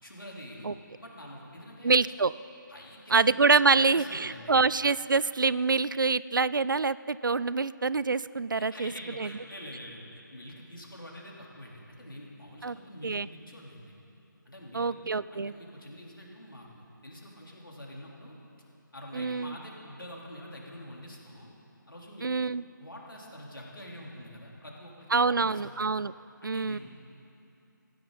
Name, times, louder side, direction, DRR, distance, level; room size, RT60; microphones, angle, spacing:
voice 1, 0.0-1.9 2.7-4.6 8.6-13.9 14.5-18.4 18.9-21.5 21.9-22.5 22.8-25.6 26.4-26.8, equal, 80° left, -3 dB, 3.6 m, -46 dB
voice 2, 1.8-2.3 3.1-8.9 9.2-9.3 12.6-12.8 13.0-13.3 14.7-15.5 19.1-19.6 22.2-22.6 25.1-26.1 26.4-26.8, right 4 dB, 70° right, 18 dB, 0.4 m, -26 dB
20.5 x 15.5 x 4.0 m, 2.9 s
figure-of-eight pair, 150°, 11 cm